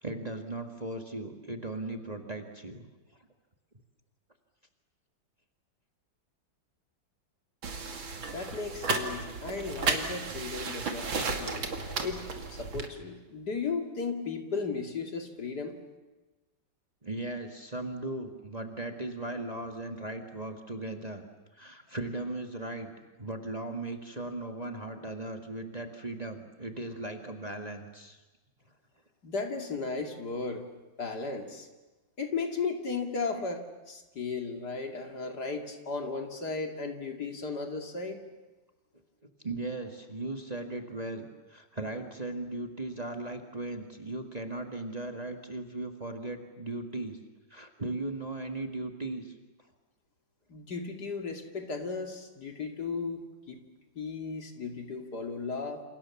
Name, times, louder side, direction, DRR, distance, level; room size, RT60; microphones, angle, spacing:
voice 1, 0.0-2.8 17.0-21.2 21.5-22.9 23.2-28.2 39.4-47.2 47.5-49.3, right 2 dB, 20° right, 4 dB, 1.9 m, -37 dB
sound 1, 7.6-12.9, right 4 dB, 90° right, 3.2 m, -34 dB
voice 2, 8.3-11.7 12.0-15.8 29.2-30.7 31.0-31.7 32.2-38.2 50.5-53.6 54.0-55.8, left 4 dB, 55° left, 4 dB, 3.0 m, -35 dB
28.5 x 28.0 x 7.3 m, 1.2 s
omnidirectional pair, 2.1 m